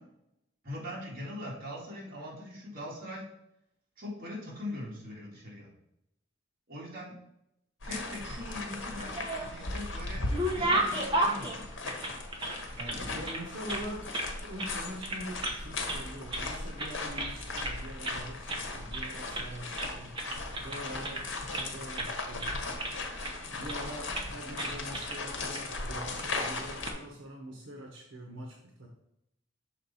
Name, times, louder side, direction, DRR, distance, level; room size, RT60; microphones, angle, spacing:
voice 1, 0.6-3.2 4.0-5.7 6.7-7.2 7.8-10.3 10.5-11.7 12.8-13.2, left 1 dB, 50° right, -4 dB, 2.1 m, -41 dB
sound 1, 7.8-26.9, left 3 dB, 75° left, 1.1 m, -38 dB
sound 2, 8.8-9.7 10.0-13.0 13.2-14.3 14.6-14.8 15.0-15.6 15.9-16.5 16.8-17.8 18.0-18.2 18.5-18.7 18.9-19.5 19.8-21.7 22.0-22.1 22.4-23.3 23.7-23.9 24.1-24.3 24.6-25.2 25.5-25.6 26.6-26.9, right 1 dB, 25° right, 0.9 m, -33 dB
voice 2, 12.9-14.1 14.4-20.2 20.6-21.3 21.6-22.6 23.5-28.9, equal, 85° right, 1 dB, 0.9 m, -43 dB
6.5 x 4.1 x 4.1 m, 0.80 s
head